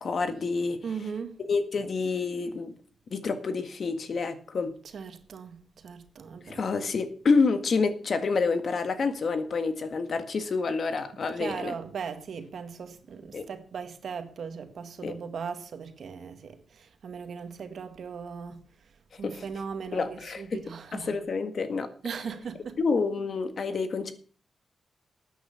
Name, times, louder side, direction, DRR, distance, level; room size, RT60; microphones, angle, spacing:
voice 1, 0.0-0.8 1.5-2.7 3.1-4.7 6.5-11.7 13.3-13.5 15.0-15.1 19.2-19.4 19.9-20.6 20.9-21.9 22.8-24.1, left 4 dB, 60° left, 1.7 m, -28 dB
voice 2, 0.8-1.4 4.9-6.7 11.4-18.6 19.2-21.2 22.0-22.8, right 6 dB, 70° right, 1.7 m, -38 dB
13.0 x 9.2 x 5.8 m
cardioid pair, 85°, 0 cm